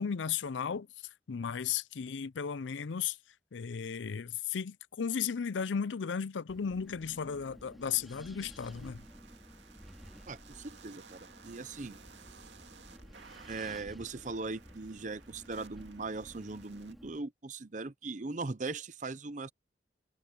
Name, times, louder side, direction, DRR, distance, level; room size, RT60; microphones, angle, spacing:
voice 1, 0.0-3.2 3.5-9.1, left 7 dB, 90° left, 0.5 m, -35 dB
Wind, 6.5-17.2, equal, ahead, 4.8 m, -53 dB
sound 1, 8.6-16.9, right 5 dB, 80° right, 2.3 m, -57 dB
voice 2, 10.3-12.0 13.5-19.5, right 3 dB, 40° right, 0.7 m, -39 dB
head